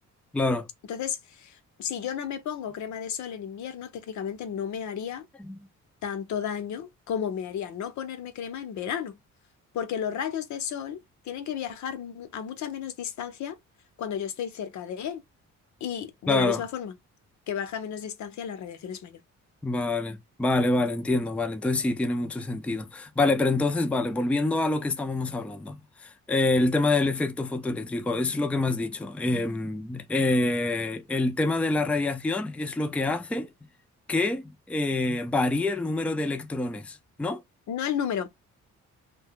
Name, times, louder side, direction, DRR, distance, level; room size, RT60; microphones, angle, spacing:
voice 1, 0.3-0.7 16.3-16.6 19.6-33.5 34.1-37.4, left 2 dB, 5° left, 0.4 m, -26 dB
voice 2, 0.9-5.3 6.0-9.2 9.7-13.6 14.0-15.2 15.8-16.9 17.5-19.2 37.7-38.3, left 8 dB, 70° left, 0.8 m, -33 dB
2.7 x 2.2 x 3.7 m
cardioid pair, 90°, 30 cm